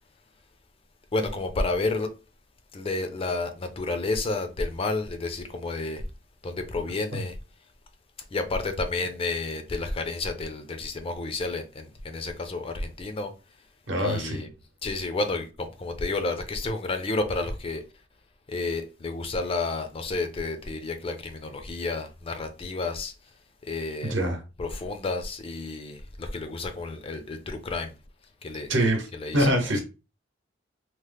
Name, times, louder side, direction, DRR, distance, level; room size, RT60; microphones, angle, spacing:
voice 1, 1.1-2.1 2.7-6.0 6.4-7.3 8.3-13.3 14.0-14.5 14.8-17.8 18.5-23.1 23.6-24.2 24.6-27.9 28.4-28.7 29.1-29.5, left 3 dB, 30° left, 0.4 m, -31 dB
voice 2, 13.9-14.4 24.0-24.4 28.7-29.1 29.3-29.8, right 1 dB, 65° right, 0.9 m, -24 dB
3.0 x 2.0 x 3.3 m
head